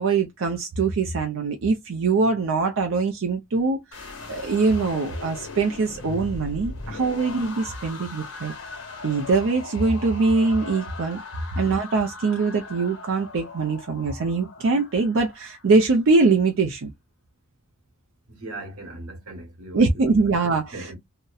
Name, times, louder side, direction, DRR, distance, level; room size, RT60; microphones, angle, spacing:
voice 1, 0.0-8.5 9.0-11.2 11.6-16.9 19.7-20.9, right 4 dB, 65° right, 0.5 m, -23 dB
sound 1, 3.9-16.0, left 3 dB, 65° left, 1.2 m, -39 dB
voice 2, 18.3-20.0 20.7-21.0, right 2 dB, 85° right, 1.1 m, -38 dB
2.7 x 2.1 x 2.2 m
head